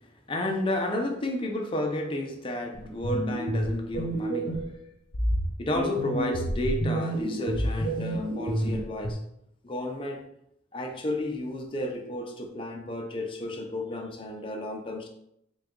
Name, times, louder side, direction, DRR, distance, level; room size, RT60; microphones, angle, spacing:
voice 1, 0.3-4.6 5.6-9.2 9.6-10.3 10.7-15.1, left 1 dB, 25° left, 2 dB, 0.5 m, -32 dB
sound 1, 2.7-4.7 5.1-9.1, equal, 75° left, 1.0 m, -29 dB
3.9 x 2.3 x 3.6 m, 0.76 s
head